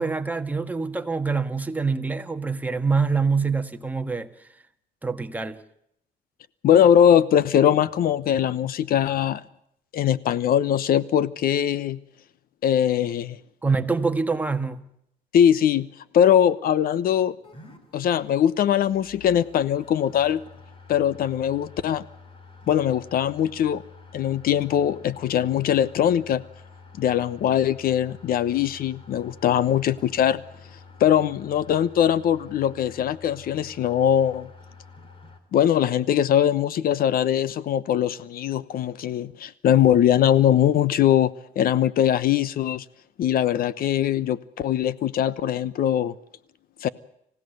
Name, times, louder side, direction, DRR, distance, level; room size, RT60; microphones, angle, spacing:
voice 1, 0.0-4.5 5.0-5.6 13.6-14.9, right 4 dB, 10° right, 1.5 m, -25 dB
voice 2, 6.6-9.4 9.9-12.0 12.6-13.4 15.3-15.9 16.1-17.3 17.9-20.4 20.9-22.0 22.7-23.8 24.1-26.4 27.0-30.4 31.0-34.5 35.5-41.3 41.6-42.8 43.2-46.1 46.8-46.9, left 10 dB, 60° left, 1.0 m, -21 dB
sound 1, 17.4-35.4, left 4 dB, 30° left, 3.4 m, -48 dB
25.5 x 16.5 x 7.9 m
cardioid pair, 110°, 17 cm